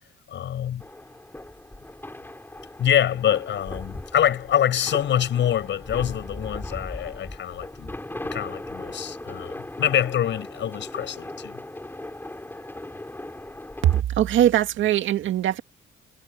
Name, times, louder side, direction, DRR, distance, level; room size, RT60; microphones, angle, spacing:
voice 1, 0.3-0.8 2.8-7.9 8.3-11.6, left 10 dB, 70° left, 7.1 m, -25 dB
sound 1, 0.8-14.0, left 1 dB, 10° left, 6.5 m, -38 dB
voice 2, 13.8-15.6, right 11 dB, 75° right, 2.2 m, -21 dB
cardioid pair, 90°, 20 cm